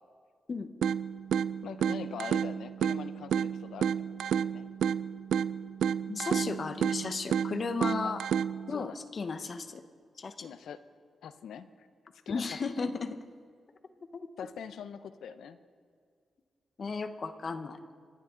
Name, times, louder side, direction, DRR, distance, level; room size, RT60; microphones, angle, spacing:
sound 1, 0.8-8.8, right 8 dB, 80° right, 0.3 m, -31 dB
voice 1, 1.6-3.9 4.2-4.7 8.0-8.1 8.7-9.0 10.4-10.8 11.2-11.9 12.3-12.4 12.8-12.9 14.4-15.6, left 7 dB, 85° left, 12 dB, 0.7 m, -43 dB
voice 2, 6.1-8.2 8.7-9.8 10.2-10.5 12.3-13.2 14.1-14.3 16.8-17.8, left 4 dB, 50° left, 9 dB, 1.0 m, -35 dB
26.5 x 10.5 x 3.9 m, 2.1 s
cardioid pair, 90°, 0 cm